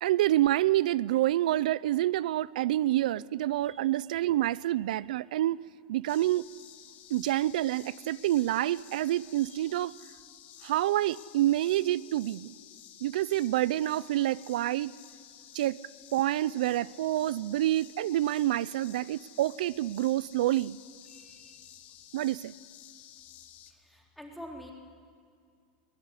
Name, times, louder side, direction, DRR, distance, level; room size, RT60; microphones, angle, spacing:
voice 1, 0.0-5.6 5.9-6.5 7.1-9.9 10.6-12.5 13.0-14.9 15.5-15.8 16.1-20.8 22.1-22.5, right 14 dB, 80° right, 0.5 m, -27 dB
sound 1, 6.1-23.7, left 11 dB, 40° left, 1.7 m, -52 dB
voice 2, 21.1-21.6 23.7-24.7, equal, ahead, 3.8 m, -47 dB
20.5 x 19.5 x 9.9 m
supercardioid pair, 140°, 4 cm